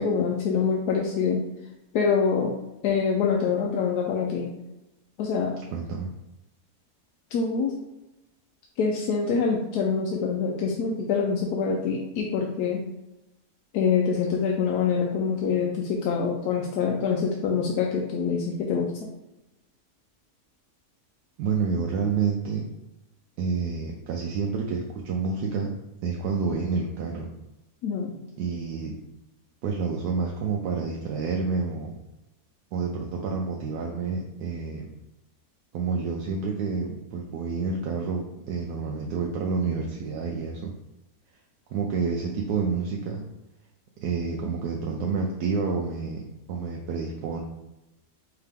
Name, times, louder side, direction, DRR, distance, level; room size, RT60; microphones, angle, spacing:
voice 1, 0.0-1.4 1.9-2.5 2.8-4.5 5.2-5.5 7.3-7.7 8.8-12.8 13.7-18.9 27.8-28.1, left 5 dB, 90° left, 0 dB, 1.2 m, -25 dB
voice 2, 5.7-6.1 21.4-22.7 23.4-25.7 26.0-27.3 28.4-29.0 29.6-31.9 32.7-34.9 35.7-40.7 41.7-43.2 44.0-46.2 46.5-47.4, right 5 dB, 85° right, 0 dB, 1.1 m, -29 dB
4.6 x 2.9 x 3.5 m, 0.94 s
omnidirectional pair, 1.6 m